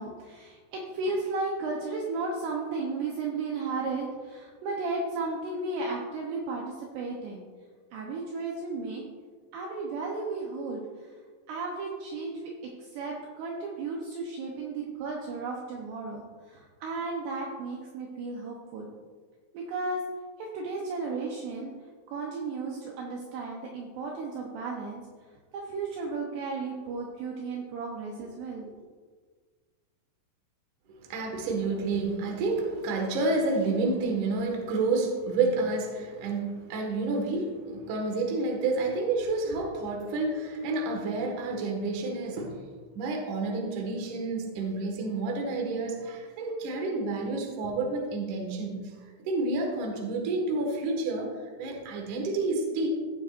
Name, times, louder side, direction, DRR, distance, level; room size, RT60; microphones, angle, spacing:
voice 1, 0.0-7.4 7.9-9.0 9.5-11.1 11.5-12.5 12.8-18.9 19.5-20.0 20.4-21.7 22.1-25.0 25.5-28.7, right 3 dB, 75° right, -1 dB, 2.7 m, -34 dB
voice 2, 30.9-42.5 42.9-48.8 49.3-51.3 51.6-52.9, right 3 dB, 60° right, 1 dB, 2.4 m, -29 dB
17.5 x 7.3 x 2.5 m, 1.5 s
omnidirectional pair, 5.5 m